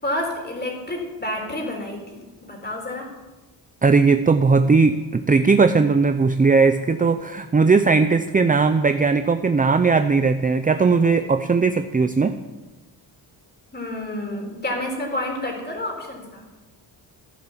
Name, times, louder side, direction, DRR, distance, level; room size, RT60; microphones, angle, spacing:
voice 1, 0.0-3.1 13.7-16.4, left 1 dB, 20° left, 1 dB, 4.3 m, -29 dB
voice 2, 3.8-12.4, right 4 dB, 20° right, 9 dB, 0.5 m, -18 dB
15.0 x 11.0 x 7.3 m, 1.1 s
wide cardioid pair, 140°, 45 cm